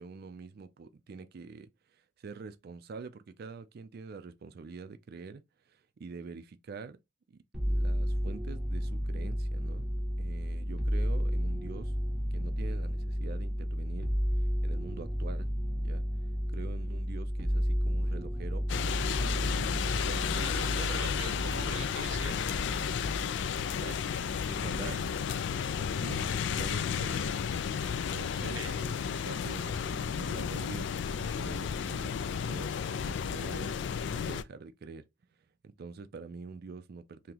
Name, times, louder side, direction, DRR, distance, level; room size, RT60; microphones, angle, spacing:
voice 1, 0.0-7.0 7.3-11.9 12.3-15.5 15.8-16.0 16.5-18.7 19.1-20.9 22.6-22.7 23.6-24.1 24.5-25.0 26.0-27.4 27.9-30.9 31.2-35.1 35.6-37.3, right 4 dB, 55° right, 0.4 m, -46 dB
sound 1, 7.5-25.0 25.3-26.1, equal, 5° right, 0.7 m, -32 dB
sound 2, 18.7-34.4, left 7 dB, 65° left, 0.3 m, -33 dB
voice 2, 20.2-22.5 23.9-24.0 24.9-25.0 28.4-28.8, right 4 dB, 85° right, 0.9 m, -43 dB
2.9 x 2.8 x 3.7 m
head